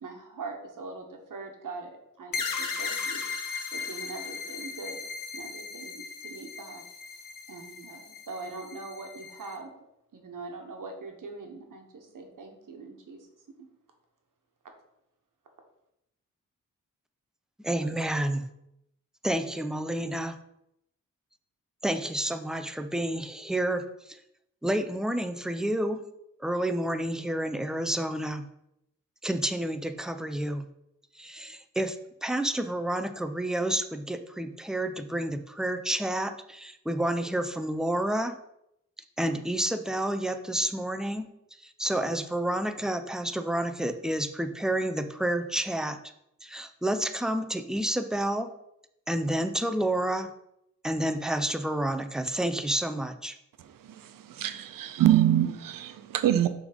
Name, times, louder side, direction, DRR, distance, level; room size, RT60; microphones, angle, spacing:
voice 1, 0.0-3.3 3.7-5.0 5.3-6.8 7.5-9.7 10.1-13.3 13.6-13.7, right 3 dB, 75° right, 3 dB, 1.3 m, -42 dB
sound 1, 2.3-9.6, left 5 dB, 80° left, 0.9 m, -37 dB
voice 2, 17.6-18.4 19.2-20.4 21.8-24.2 24.6-26.0 26.4-28.5 29.2-30.7 31.2-38.3 39.2-41.3 41.6-46.0 46.4-48.5 49.1-50.3 50.8-53.4, right 1 dB, ahead, 8 dB, 0.6 m, -29 dB
voice 3, 53.8-56.5, right 12 dB, 90° right, 11 dB, 0.6 m, -25 dB
6.0 x 3.7 x 5.1 m, 0.80 s
cardioid pair, 50°, 32 cm